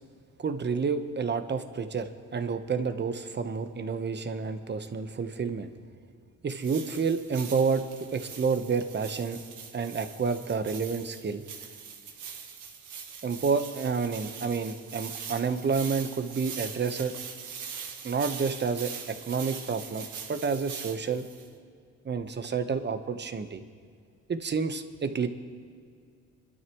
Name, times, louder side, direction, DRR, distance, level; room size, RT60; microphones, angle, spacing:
voice 1, 0.4-5.7 6.4-7.8 8.1-9.4 9.7-11.4 13.2-17.1 18.0-21.2 22.0-23.6 24.3-25.3, right 5 dB, 35° right, 9 dB, 1.1 m, -29 dB
sound 1, 6.6-21.5, right 6 dB, 80° right, 1.8 m, -42 dB
26.5 x 12.5 x 3.1 m, 2.2 s
cardioid pair, 90°, 30 cm